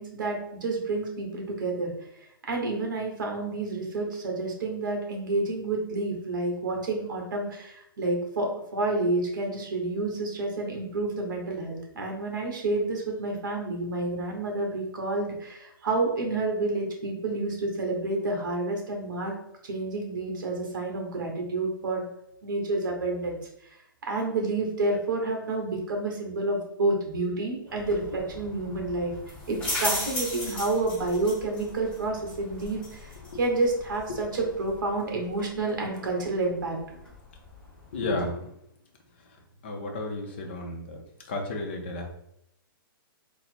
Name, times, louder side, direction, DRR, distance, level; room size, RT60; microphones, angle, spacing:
voice 1, 0.0-1.9 2.5-19.3 19.6-22.1 22.4-23.4 24.0-29.1 29.5-33.1 33.4-36.8, right 2 dB, 55° right, 1 dB, 1.1 m, -29 dB
sound 1, 27.7-38.3, left 1 dB, 10° left, 0.9 m, -38 dB
voice 2, 37.9-38.4 39.6-41.0 41.3-42.1, left 2 dB, 30° left, 2 dB, 0.5 m, -32 dB
3.9 x 2.1 x 4.3 m, 0.77 s
hypercardioid pair, 180°, 12 cm